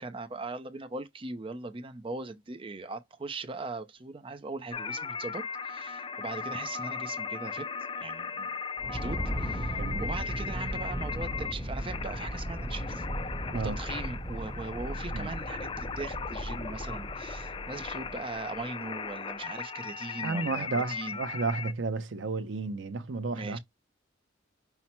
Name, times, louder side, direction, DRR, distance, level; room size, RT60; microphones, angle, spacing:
voice 1, 0.0-7.7 8.0-8.5 8.9-13.0 13.5-21.2 23.3-23.6, right 3 dB, 30° right, 0.5 m, -40 dB
sound 1, 4.7-21.7, left 5 dB, 30° left, 0.4 m, -38 dB
sound 2, 8.8-18.4, right 1 dB, 5° right, 0.9 m, -36 dB
voice 2, 9.8-10.1 13.5-13.8 15.1-15.3 20.2-23.6, right 3 dB, 75° right, 0.6 m, -32 dB
5.7 x 2.0 x 4.3 m
head